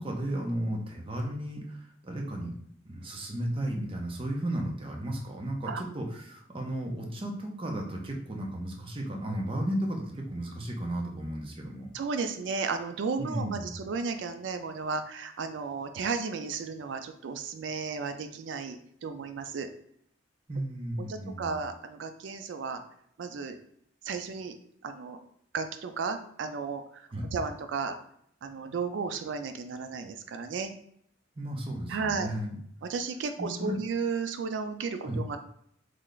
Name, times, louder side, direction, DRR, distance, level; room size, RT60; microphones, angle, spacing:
voice 1, 0.0-2.5 2.8-11.9 13.2-13.8 20.5-21.6 27.1-27.3 31.4-32.6 33.4-33.8 35.0-35.2, right 1 dB, 30° right, 1 dB, 0.6 m, -34 dB
voice 2, 11.9-19.7 21.1-22.8 23.2-23.6 24.0-24.5 24.8-25.2 25.5-28.0 28.4-30.7 31.9-32.3 32.8-35.4, right 5 dB, 70° right, 8 dB, 0.4 m, -34 dB
3.2 x 2.3 x 3.8 m, 0.68 s
head